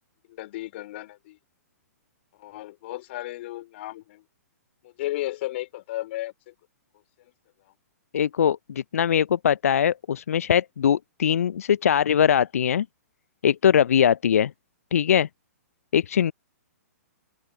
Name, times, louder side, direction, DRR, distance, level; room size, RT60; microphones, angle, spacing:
voice 1, 0.3-1.4 2.4-4.2 4.8-6.5 7.6-7.7, left 16 dB, 45° left, 3.6 m, -34 dB
voice 2, 8.1-12.9 13.4-14.5 14.9-15.3 15.9-16.3, left 8 dB, 65° left, 0.5 m, -21 dB
open air
figure-of-eight pair, 115°, 9 cm